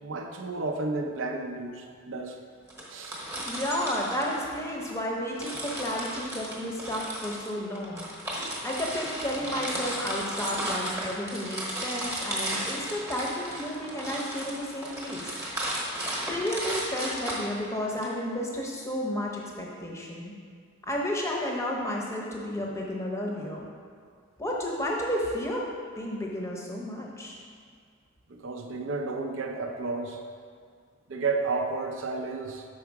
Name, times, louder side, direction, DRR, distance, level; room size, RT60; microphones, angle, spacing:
voice 1, 0.0-2.4 2.9-3.2 8.4-8.5 28.3-30.2 31.1-32.6, right 3 dB, 60° right, 3 dB, 0.6 m, -32 dB
sound 1, 2.7-4.9 5.4-18.0, right 1 dB, 15° right, 1.0 m, -34 dB
voice 2, 3.4-8.1 8.6-15.4 16.2-20.3 20.9-23.7 24.4-25.7 26.0-27.4, left 1 dB, 15° left, -2 dB, 0.8 m, -32 dB
6.3 x 4.6 x 4.7 m, 2.1 s
head